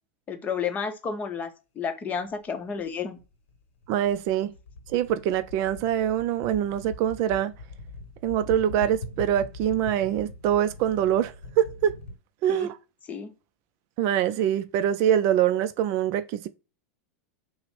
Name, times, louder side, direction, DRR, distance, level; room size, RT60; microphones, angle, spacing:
voice 1, 0.3-1.5 1.8-3.2 12.5-12.7 13.1-13.3, left 6 dB, 20° left, 0.7 m, -31 dB
sound 1, 2.3-2.4 2.8-12.2, left 3 dB, 80° left, 0.9 m, -42 dB
voice 2, 3.9-4.5 4.9-7.5 8.2-12.0 12.4-12.7 14.0-16.5, right 10 dB, 45° right, 0.3 m, -24 dB
6.0 x 2.0 x 3.1 m
supercardioid pair, 135°, 7 cm